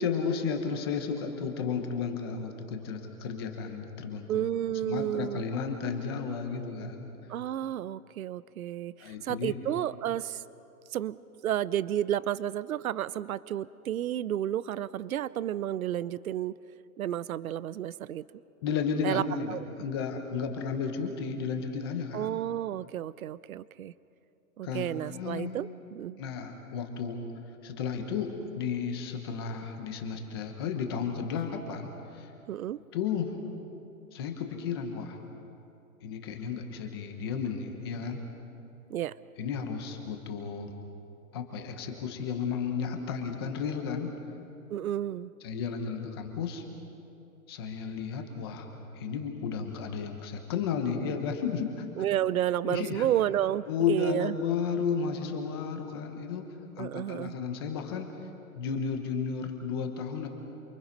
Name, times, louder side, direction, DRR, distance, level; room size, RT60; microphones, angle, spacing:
voice 1, 0.0-4.5 4.8-7.1 9.0-9.6 18.6-22.3 24.6-25.5 26.2-27.2 27.6-32.3 32.9-33.3 34.1-35.2 36.0-38.2 39.4-40.7 41.3-44.1 45.4-46.6 47.5-48.7 48.9-51.9 52.6-53.1 53.7-56.5 56.8-58.1 58.5-60.3, left 6 dB, 15° left, 4 dB, 1.1 m, -33 dB
voice 2, 4.3-5.4 7.3-10.4 10.9-11.2 11.4-16.5 17.0-18.2 19.0-19.7 22.1-23.9 24.6-26.2 32.5-32.8 38.9-39.2 44.7-45.3 52.0-54.3 56.8-57.3, right 11 dB, 70° right, 18 dB, 0.7 m, -31 dB
28.5 x 24.0 x 5.4 m, 2.7 s
hypercardioid pair, 180°, 44 cm